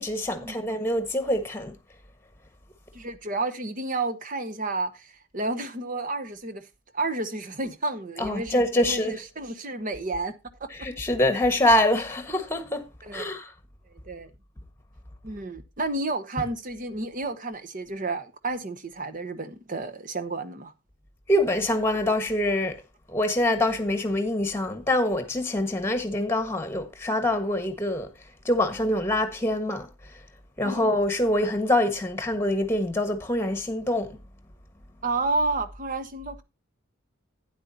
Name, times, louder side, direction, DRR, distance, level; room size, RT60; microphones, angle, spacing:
voice 1, 0.0-1.7 8.2-9.2 10.7-12.9 13.1-13.5 16.4-16.5 21.3-22.8 23.1-28.1 28.4-30.2 30.6-34.2, left 1 dB, 10° left, 1.4 m, -25 dB
voice 2, 2.9-6.6 6.9-10.3 10.6-10.9 13.0-13.3 14.0-14.3 15.2-20.7 30.6-30.9 35.0-36.4, right 2 dB, 40° right, 1.0 m, -31 dB
12.0 x 9.6 x 2.7 m
head